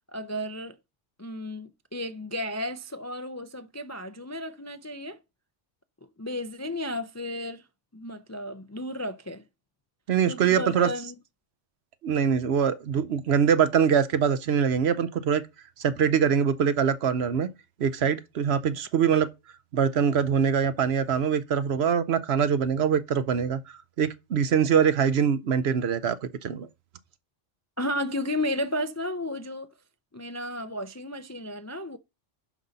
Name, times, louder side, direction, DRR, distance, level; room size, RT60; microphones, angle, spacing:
voice 1, 0.1-0.8 1.2-5.2 6.2-7.6 7.9-9.4 10.3-11.1 27.8-29.7 30.1-32.0, left 1 dB, 25° left, 0.3 m, -33 dB
voice 2, 10.1-10.9 12.0-15.4 15.8-17.5 17.8-19.3 19.7-23.6 24.0-26.7, right 7 dB, 65° right, 0.9 m, -23 dB
12.0 x 5.4 x 3.9 m
omnidirectional pair, 1.2 m